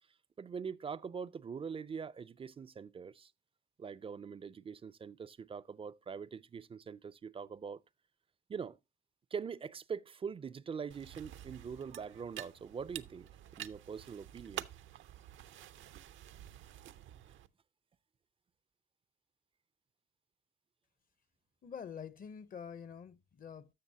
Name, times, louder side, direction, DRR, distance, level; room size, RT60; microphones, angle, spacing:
voice 1, 0.4-3.3 3.8-7.8 8.5-8.8 9.3-13.3 13.6-14.7, right 6 dB, 30° right, 0.4 m, -43 dB
sound 1, 10.9-17.5, right 11 dB, 75° right, 0.5 m, -49 dB
voice 2, 21.6-23.7, left 7 dB, 45° left, 0.7 m, -46 dB
13.0 x 6.2 x 2.7 m
cardioid pair, 90°, 20 cm